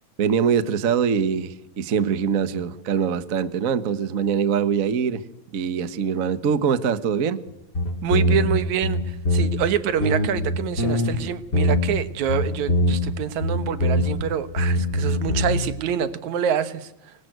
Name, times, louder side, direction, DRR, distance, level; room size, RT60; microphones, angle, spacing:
voice 1, 0.2-5.2 5.5-7.4, right 7 dB, 50° right, 13 dB, 0.9 m, -23 dB
sound 1, 7.5-7.6 7.8-9.7 10.0-11.2 11.5-12.0 12.3-13.1 13.4-14.3 14.6-15.6, left 1 dB, 35° left, 5.0 m, -22 dB
voice 2, 8.0-17.1, right 9 dB, 80° right, 13 dB, 2.6 m, -26 dB
26.5 x 22.5 x 9.3 m, 0.84 s
omnidirectional pair, 3.3 m